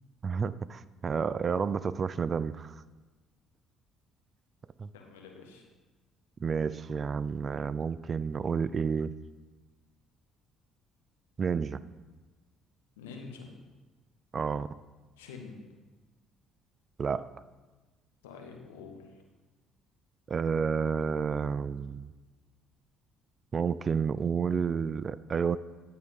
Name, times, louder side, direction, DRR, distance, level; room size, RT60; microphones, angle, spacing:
voice 1, 0.2-2.8 4.8-4.9 6.4-9.1 11.4-11.8 14.3-14.7 17.0-17.3 20.3-22.1 23.5-25.6, right 6 dB, 40° right, 16 dB, 0.3 m, -30 dB
voice 2, 4.9-5.7 13.0-13.5 15.2-15.6 18.2-19.2, left 5 dB, 85° left, 2 dB, 1.1 m, -46 dB
9.4 x 4.7 x 5.4 m, 1.3 s
hypercardioid pair, 55°, 0 cm